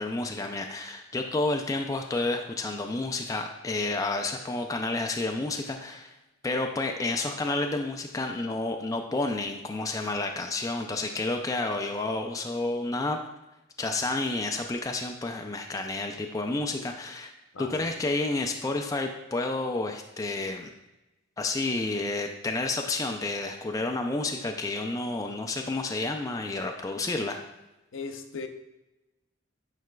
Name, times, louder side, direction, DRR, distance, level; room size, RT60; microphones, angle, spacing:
voice 1, 0.0-6.1 6.4-13.2 13.8-17.3 17.6-20.7 21.4-27.4, left 2 dB, 15° left, 4 dB, 0.3 m, -30 dB
voice 2, 17.5-17.9 27.9-28.5, left 4 dB, 75° left, 6 dB, 0.6 m, -37 dB
9.3 x 4.9 x 2.3 m, 1.0 s
head